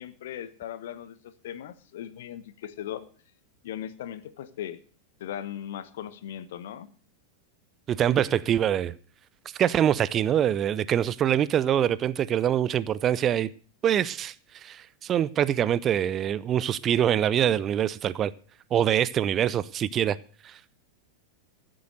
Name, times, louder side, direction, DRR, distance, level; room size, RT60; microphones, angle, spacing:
voice 1, 0.0-3.1 3.6-4.8 5.2-6.9, left 10 dB, 55° left, 1.1 m, -38 dB
voice 2, 7.9-8.9 9.6-13.5 13.8-18.3 18.7-20.2 20.4-20.6, right 10 dB, 30° right, 0.5 m, -24 dB
14.5 x 7.8 x 6.4 m
figure-of-eight pair, 90°, 0 cm